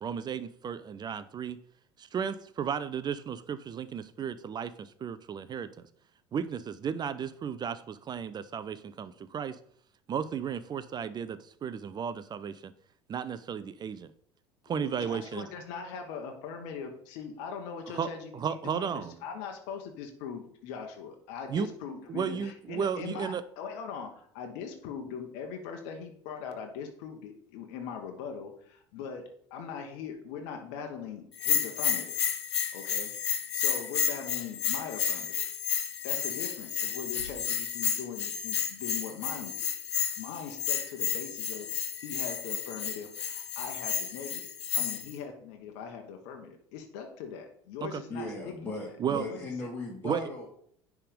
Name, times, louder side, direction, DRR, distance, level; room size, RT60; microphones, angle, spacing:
voice 1, 0.0-1.6 2.0-5.7 6.3-9.6 10.1-12.7 13.1-14.1 14.7-15.5 17.9-19.1 21.5-21.7 22.1-23.4 47.8-48.0 49.0-49.3 50.0-50.2, right 7 dB, 30° right, 14 dB, 0.5 m, -34 dB
voice 2, 14.7-32.2 32.7-33.1 33.5-35.5 36.0-48.7 49.2-49.7, left 6 dB, 60° left, 4 dB, 1.2 m, -41 dB
Bell, 31.4-45.1, left 8 dB, 75° left, 0.8 m, -31 dB
voice 3, 48.1-50.5, left 1 dB, 10° left, -5 dB, 2.2 m, -38 dB
9.8 x 3.5 x 5.1 m, 0.63 s
figure-of-eight pair, 65°, 15 cm